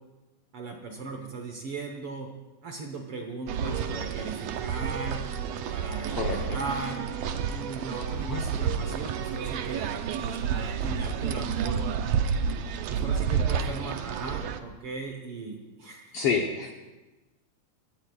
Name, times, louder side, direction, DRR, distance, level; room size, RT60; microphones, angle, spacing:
voice 1, 0.5-2.3 2.6-5.2 5.7-7.0 7.5-11.8 12.9-16.2, right 3 dB, 55° right, 3 dB, 1.7 m, -38 dB
sound 1, 3.5-14.6, right 7 dB, 75° right, 1.5 m, -30 dB
voice 2, 6.1-6.6 8.3-8.4 16.1-16.7, left 5 dB, 65° left, 1 dB, 1.5 m, -28 dB
22.5 x 17.0 x 2.4 m, 1.1 s
omnidirectional pair, 3.7 m